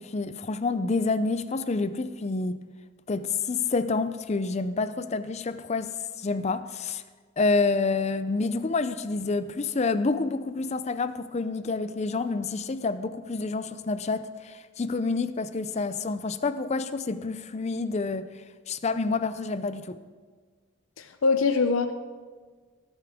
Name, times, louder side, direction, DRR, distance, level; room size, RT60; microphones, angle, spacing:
voice 1, 0.0-2.6 3.1-7.0 7.4-20.0, left 3 dB, 35° left, 12 dB, 0.5 m, -28 dB
voice 2, 21.0-21.9, left 4 dB, 80° left, 8 dB, 0.5 m, -23 dB
18.0 x 8.3 x 3.6 m, 1.5 s
head